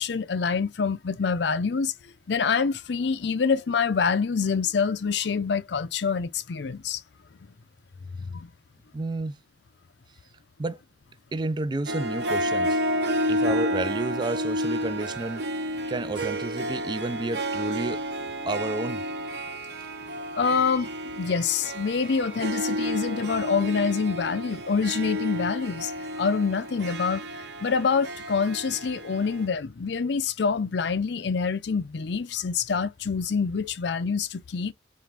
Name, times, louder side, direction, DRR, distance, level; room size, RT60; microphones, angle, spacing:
voice 1, 0.0-1.9 2.3-7.0 8.2-8.5 13.2-13.3 20.4-25.9 26.2-27.2 27.6-34.7, left 5 dB, 70° left, 0.5 m, -26 dB
voice 2, 8.9-9.4 10.6-10.8 11.3-12.8 13.3-15.4 15.9-18.0 18.5-19.0, right 2 dB, 25° right, 0.3 m, -31 dB
Harp, 11.9-29.5, equal, 60° right, 0.7 m, -31 dB
4.6 x 2.5 x 3.3 m
head